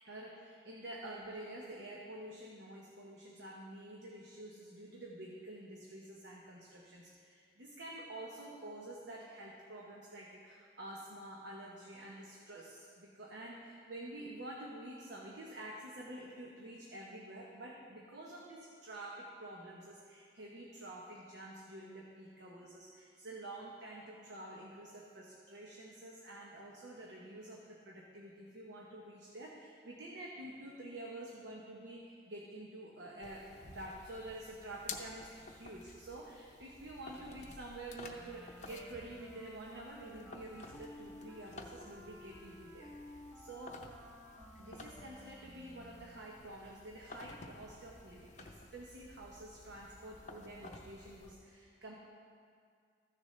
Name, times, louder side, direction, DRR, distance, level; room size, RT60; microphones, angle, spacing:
voice 1, 0.0-43.9 44.5-51.9, right 1 dB, 70° right, -3 dB, 0.9 m, -49 dB
sound 1, 33.2-51.3, left 3 dB, 40° left, 0.7 m, -53 dB
Wind instrument woodwind instrument, 38.1-46.4, left 1 dB, 5° left, 0.8 m, -55 dB
14.0 x 6.9 x 3.2 m, 2.2 s
head